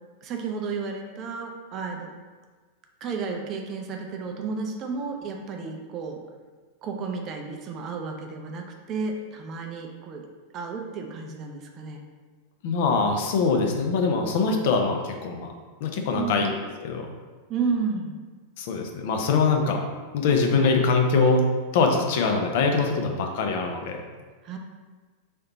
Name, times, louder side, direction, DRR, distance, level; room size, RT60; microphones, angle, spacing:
voice 1, 0.2-2.1 3.0-6.2 6.8-10.2 10.5-12.0 16.1-16.6 17.5-18.2 20.5-20.8 24.4-24.6, right 4 dB, 35° right, 2 dB, 0.5 m, -32 dB
voice 2, 12.6-15.5 15.8-17.1 18.6-19.8 20.1-21.4 21.7-24.0, left 4 dB, 50° left, 3 dB, 0.5 m, -23 dB
3.3 x 2.8 x 4.0 m, 1.4 s
figure-of-eight pair, 90°, 0 cm